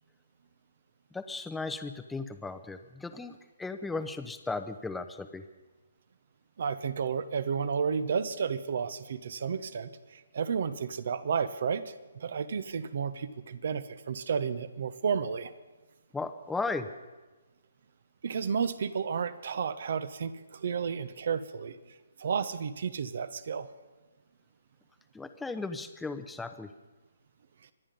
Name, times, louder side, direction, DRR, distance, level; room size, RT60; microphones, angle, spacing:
voice 1, 1.1-5.4 16.1-16.9 25.1-26.7, left 3 dB, 5° left, 9 dB, 0.8 m, -36 dB
voice 2, 6.6-15.5 18.2-21.8 22.2-23.7, right 6 dB, 55° right, 14 dB, 1.0 m, -32 dB
25.0 x 10.0 x 5.4 m, 1.2 s
figure-of-eight pair, 140°, 0 cm